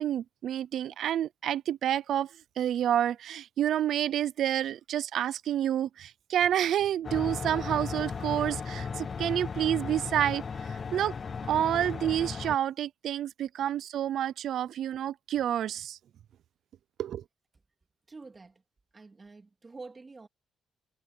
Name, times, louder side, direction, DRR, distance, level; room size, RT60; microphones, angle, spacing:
voice 1, 0.0-2.3 2.6-10.4 10.7-11.1 11.5-16.0 17.0-17.2, right 11 dB, 70° right, 0.6 m, -29 dB
sound 1, 7.0-12.6, left 5 dB, 40° left, 0.4 m, -36 dB
voice 2, 18.1-18.6 18.9-20.3, right 3 dB, 25° right, 3.3 m, -47 dB
cardioid pair, 90°, 0 cm